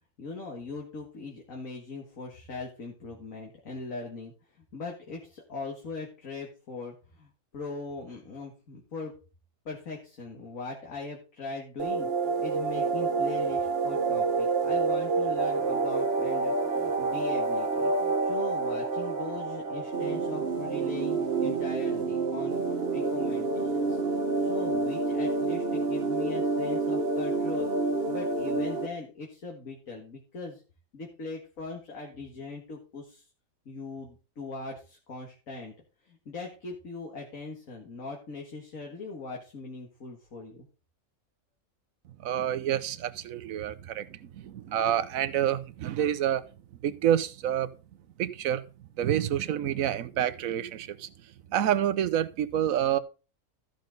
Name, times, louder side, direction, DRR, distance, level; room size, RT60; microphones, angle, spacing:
voice 1, 0.2-9.1 9.7-24.0 24.4-27.7 28.1-30.6 30.9-33.3 33.7-35.7 36.0-40.7, left 3 dB, 60° left, 2.2 m, -40 dB
sound 1, 11.8-28.9, right 3 dB, 45° right, 1.3 m, -28 dB
voice 2, 42.2-46.4 46.8-47.7 48.2-48.6 49.0-51.1 51.5-53.0, right 10 dB, 70° right, 1.1 m, -28 dB
14.0 x 6.5 x 3.9 m
omnidirectional pair, 1.6 m